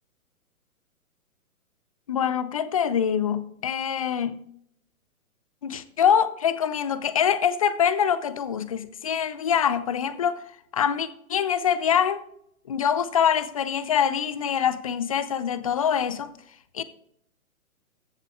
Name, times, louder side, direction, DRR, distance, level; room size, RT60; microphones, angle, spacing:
voice 1, 2.1-4.4 5.6-10.4 10.7-12.2 12.7-16.3 16.7-16.8, left 8 dB, 25° left, 0.4 m, -24 dB
15.0 x 7.3 x 2.3 m
figure-of-eight pair, 125°, 43 cm